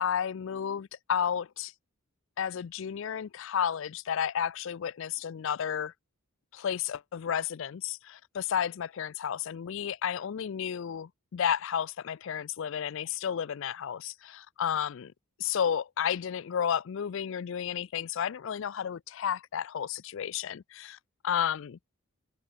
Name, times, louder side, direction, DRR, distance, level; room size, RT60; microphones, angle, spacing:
voice 1, 0.0-1.7 2.4-5.9 6.5-15.1 15.4-21.0 21.2-21.8, left 8 dB, 60° left, 0.4 m, -32 dB
open air
head